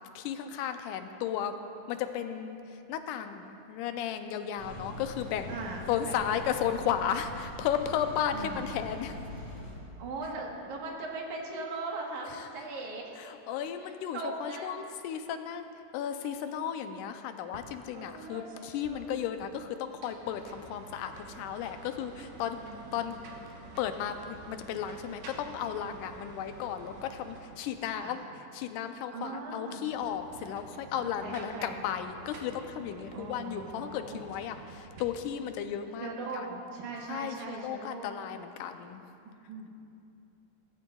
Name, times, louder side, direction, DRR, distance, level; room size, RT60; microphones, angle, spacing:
voice 1, 0.2-1.5 1.9-5.6 5.9-9.2 12.3-12.5 13.2-15.7 15.9-22.6 22.9-23.2 23.8-28.2 28.5-36.6 37.1-39.0, left 9 dB, 90° left, 8 dB, 2.1 m, -34 dB
sound 1, 4.6-9.7, left 1 dB, 35° left, 3.3 m, -43 dB
voice 2, 5.5-6.4 8.3-8.7 10.0-13.1 13.8-14.7 22.6-23.2 23.6-23.7 28.0-28.2 29.1-29.9 31.0-31.8 33.1-34.2 36.0-36.5 36.7-38.1 39.5-39.7, right 3 dB, 75° right, -1 dB, 2.7 m, -39 dB
sound 2, 17.5-17.7 17.9-19.5 19.9-28.0 29.7-35.0, right 3 dB, 90° right, 2.7 m, -49 dB
16.0 x 14.5 x 2.3 m, 2.7 s
omnidirectional pair, 3.6 m